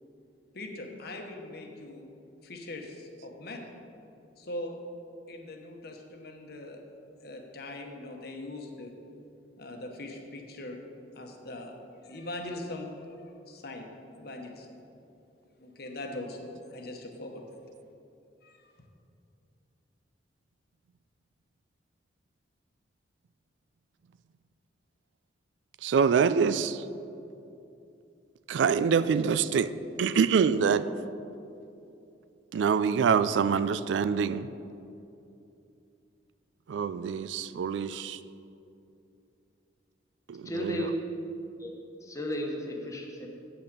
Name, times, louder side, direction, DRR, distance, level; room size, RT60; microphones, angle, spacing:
voice 1, 0.5-2.1 2.4-3.7 4.4-4.8 5.3-6.8 7.2-9.0 9.6-10.8 11.1-11.8 12.0-12.9 13.5-13.9 14.2-14.8 15.6-17.5 18.4-18.7, left 2 dB, 55° left, 3 dB, 1.0 m, -41 dB
voice 2, 25.8-26.8 28.5-29.7 30.0-30.9 32.5-34.5 36.7-38.2 40.3-40.9, right 6 dB, 75° right, 14 dB, 0.3 m, -25 dB
voice 3, 40.4-40.9 41.6-41.7 42.0-43.3, left 1 dB, 20° left, 1 dB, 1.0 m, -34 dB
8.5 x 6.0 x 6.6 m, 2.7 s
head